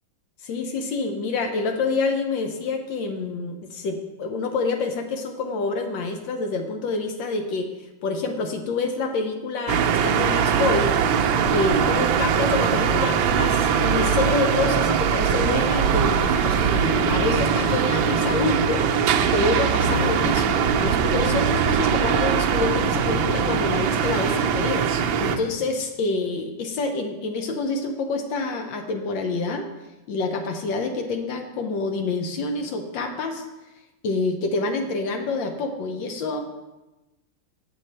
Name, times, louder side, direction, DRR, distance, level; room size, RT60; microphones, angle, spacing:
voice 1, 0.4-7.7 8.0-10.9 11.5-18.8 19.2-24.8 25.2-29.7 30.1-33.4 34.0-36.4, left 3 dB, 70° left, 5 dB, 1.3 m, -27 dB
sound 1, 9.7-25.4, right 7 dB, 75° right, 1.3 m, -21 dB
7.9 x 6.3 x 4.2 m, 1.0 s
omnidirectional pair, 2.4 m